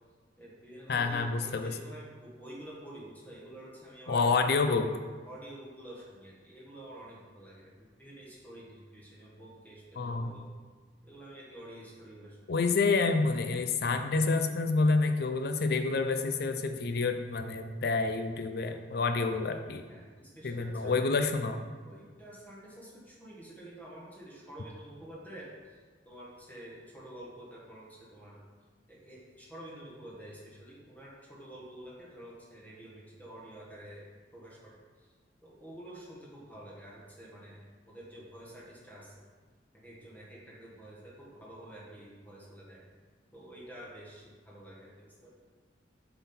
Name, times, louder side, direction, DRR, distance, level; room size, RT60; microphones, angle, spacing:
voice 1, 0.4-4.4 5.3-10.5 11.1-12.5 19.9-21.1 21.9-25.8 26.0-28.4 28.9-34.1 34.3-35.1 35.4-37.6 37.9-39.1 39.7-42.8 43.3-45.3, right 1 dB, 10° left, -6 dB, 1.3 m, -49 dB
voice 2, 0.9-1.8 4.1-4.9 10.0-10.3 12.5-19.8 20.4-21.6, left 4 dB, 60° left, 7 dB, 0.5 m, -28 dB
6.9 x 3.8 x 4.3 m, 1.4 s
head